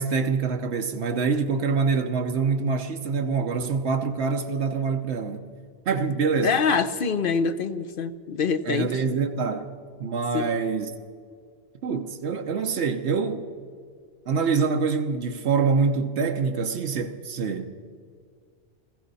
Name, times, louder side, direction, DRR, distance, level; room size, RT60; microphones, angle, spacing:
voice 1, 0.0-5.4 5.9-6.5 8.7-9.7 10.0-10.9 11.8-13.4 14.3-17.7, right 5 dB, 85° right, 5 dB, 1.1 m, -25 dB
voice 2, 6.4-9.0 10.3-10.5, left 5 dB, 60° left, 11 dB, 0.8 m, -25 dB
21.0 x 15.0 x 4.1 m, 2.1 s
omnidirectional pair, 1.1 m